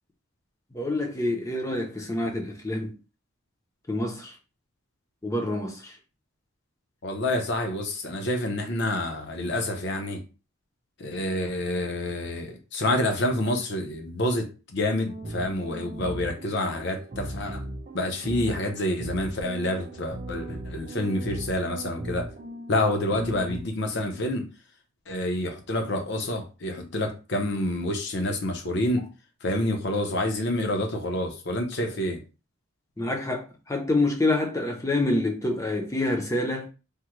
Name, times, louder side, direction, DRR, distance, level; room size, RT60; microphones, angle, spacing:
voice 1, 0.7-2.9 3.9-4.4 5.2-6.0 33.0-36.7, left 2 dB, 15° left, 0.5 m, -27 dB
voice 2, 7.0-10.2 11.0-17.6 17.9-22.3 22.7-24.5 25.1-29.1 29.4-32.2, left 1 dB, 55° left, 0.7 m, -28 dB
sound 1, 15.1-23.6, right 1 dB, 35° right, 0.5 m, -38 dB
3.5 x 2.2 x 3.0 m
head